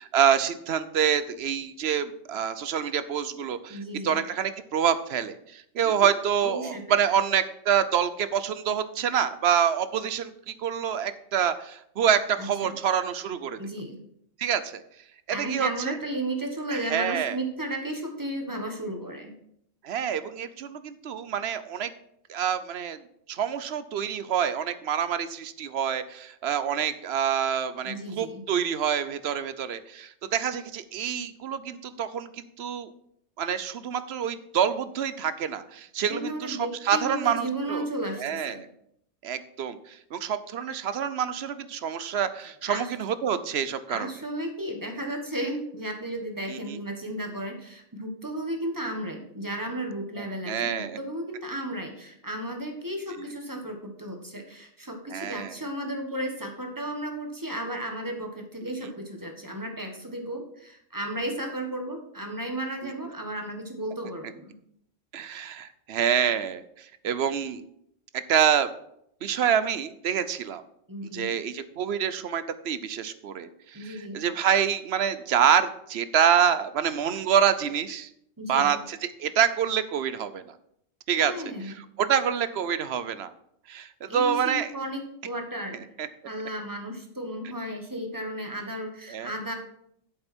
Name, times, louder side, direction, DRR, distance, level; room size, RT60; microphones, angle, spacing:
voice 1, 0.0-13.6 14.4-14.8 15.3-15.9 16.7-17.4 19.8-21.9 22.3-23.0 23.3-32.9 33.4-36.6 36.8-37.9 38.2-38.7 39.2-44.1 46.5-46.8 50.2-51.0 53.2-53.3 55.1-55.5 58.6-58.7 62.8-62.9 65.1-67.6 68.3-68.7 69.2-70.6 71.1-78.1 78.5-80.4 81.1-81.3 81.7-83.3 83.7-84.7 86.0-86.1 89.1-89.3, right 8 dB, 60° right, 13 dB, 0.8 m, -27 dB
voice 2, 3.7-4.2 6.0-6.1 6.4-7.0 12.4-12.7 13.6-14.0 15.3-19.3 27.8-28.4 36.0-38.6 42.6-42.9 43.9-64.6 70.9-71.3 73.7-74.2 78.4-78.8 81.2-81.8 84.1-85.8 86.2-89.5, right 1 dB, 15° right, 3 dB, 1.3 m, -34 dB
7.9 x 7.7 x 4.3 m, 0.72 s
omnidirectional pair, 1.3 m